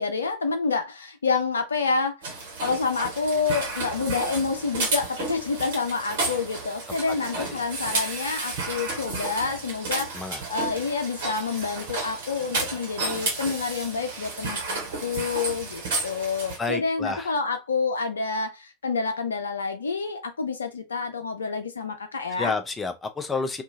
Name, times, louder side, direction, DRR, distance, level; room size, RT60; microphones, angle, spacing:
voice 1, 0.0-2.3 2.6-22.5, left 4 dB, 75° left, 0.5 m, -28 dB
sound 1, 2.2-16.6, right 3 dB, 60° right, 1.1 m, -32 dB
voice 2, 7.1-7.6 10.1-10.4 16.6-17.3 22.3-23.6, left 3 dB, 15° left, 0.6 m, -30 dB
2.7 x 2.4 x 2.6 m
figure-of-eight pair, 85°, 0 cm